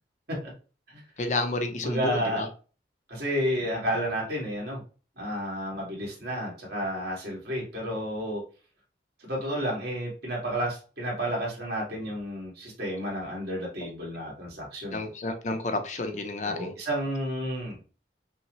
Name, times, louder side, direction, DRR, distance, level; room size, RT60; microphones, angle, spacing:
voice 1, 1.2-2.5 14.9-16.7, left 2 dB, 45° left, 0.6 m, -30 dB
voice 2, 1.8-2.4 3.1-4.8 5.2-8.4 9.2-15.0 16.4-17.8, equal, 65° right, 1.8 m, -31 dB
5.4 x 2.1 x 2.9 m
head